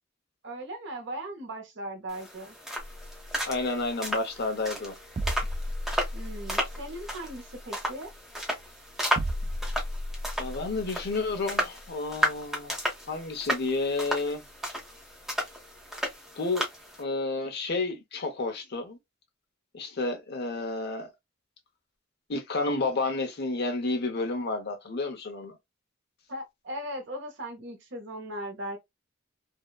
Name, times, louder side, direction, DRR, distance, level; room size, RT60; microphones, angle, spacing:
voice 1, 0.4-2.6 6.1-8.1 26.3-28.8, right 1 dB, 65° right, 0.9 m, -38 dB
sound 1, 2.1-17.0, equal, ahead, 0.8 m, -34 dB
sound 2, 2.8-16.1, equal, 30° right, 0.3 m, -38 dB
voice 2, 3.5-4.9 10.4-12.7 13.1-14.4 16.4-16.7 17.0-19.0 19.7-21.1 22.3-25.6, left 3 dB, 55° left, 0.8 m, -30 dB
2.7 x 2.2 x 2.2 m
head